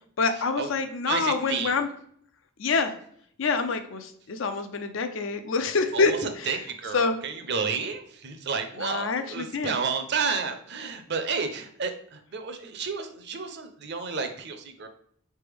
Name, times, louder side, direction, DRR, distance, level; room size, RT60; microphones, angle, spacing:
voice 1, 0.2-1.9 2.6-2.9 3.4-6.5 6.9-7.2 8.8-9.8, left 4 dB, 65° left, 8 dB, 0.5 m, -26 dB
voice 2, 1.1-1.8 5.9-14.9, right 5 dB, 50° right, 7 dB, 0.6 m, -31 dB
4.2 x 3.3 x 3.3 m, 0.63 s
head